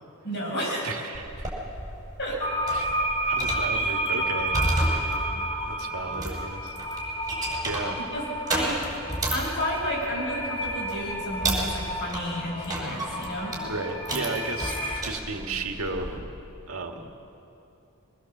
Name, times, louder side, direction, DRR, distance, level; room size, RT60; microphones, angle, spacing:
voice 1, 0.2-0.9 2.2-2.4 8.0-8.8 9.3-13.6, equal, 50° left, -4 dB, 7.4 m, -31 dB
voice 2, 0.8-1.5 2.7-6.8 7.6-8.0 13.6-14.7 15.0-16.3 16.7-17.1, right 3 dB, 70° right, 3 dB, 1.9 m, -34 dB
sound 1, 1.1-16.2, right 1 dB, 15° right, 4.9 m, -33 dB
sound 2, 2.4-15.0, right 1 dB, 25° left, 1.6 m, -31 dB
23.5 x 20.5 x 7.3 m, 2.8 s
head